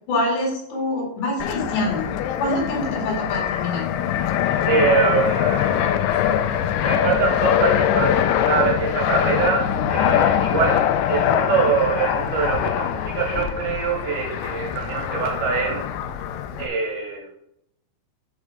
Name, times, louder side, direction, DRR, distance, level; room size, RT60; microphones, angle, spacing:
voice 1, 0.1-2.1 2.4-3.8, left 1 dB, 70° left, -2 dB, 4.6 m, -25 dB
Fixed-wing aircraft airplane, 1.4-16.7, left 10 dB, 85° left, 2.8 m, -23 dB
voice 2, 4.7-6.1 6.8-10.8 11.1-15.8 16.6-17.4, right 6 dB, 70° right, 2 dB, 2.5 m, -24 dB
11.5 x 5.3 x 3.5 m, 0.76 s
omnidirectional pair, 5.2 m